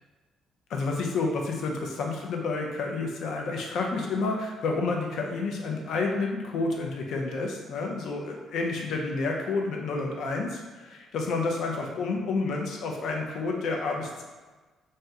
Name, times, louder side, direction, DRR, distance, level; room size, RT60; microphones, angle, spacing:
voice 1, 0.7-14.2, left 3 dB, 70° left, 1 dB, 0.5 m, -30 dB
2.8 x 2.1 x 3.5 m, 1.3 s
cardioid pair, 115°, 0 cm